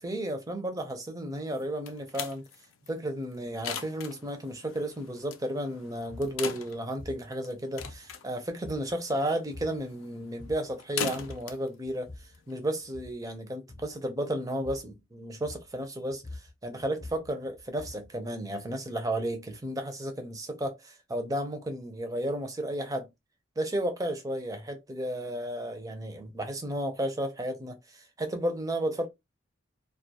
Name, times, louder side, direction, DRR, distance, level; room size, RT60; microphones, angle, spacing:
voice 1, 0.0-2.4 2.9-12.1 12.5-23.1 23.6-29.1, right 1 dB, 15° right, 0.5 m, -33 dB
sound 1, 1.5-13.0, left 7 dB, 80° left, 0.4 m, -41 dB
sound 2, 6.1-6.4 7.0-7.3 7.8-8.3 8.6-9.1 9.5-9.8 10.2-10.7 11.2-11.6 11.8-12.4 12.8-13.2 13.7-14.0 14.6-15.0 15.4-15.8 16.1-18.2, left 2 dB, 40° left, 0.7 m, -46 dB
2.4 x 2.3 x 2.7 m
head